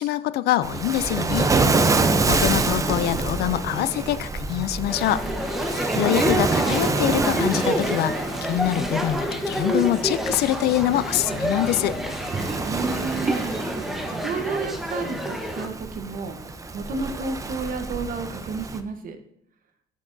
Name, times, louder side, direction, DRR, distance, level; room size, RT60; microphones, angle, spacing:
voice 1, 0.0-1.5 2.3-5.2 6.0-12.0, left 13 dB, 70° left, 15 dB, 0.4 m, -24 dB
Waves surf, 0.6-18.8, right 3 dB, 20° right, 0.6 m, -27 dB
sound 1, 4.9-15.7, equal, ahead, 1.0 m, -28 dB
Mallet percussion, 6.8-8.8, left 3 dB, 55° left, 3.7 m, -48 dB
voice 2, 12.6-13.5 14.1-16.4 16.7-19.2, right 4 dB, 55° right, 7 dB, 1.1 m, -31 dB
13.0 x 5.9 x 2.7 m, 0.71 s
cardioid pair, 110°, 17 cm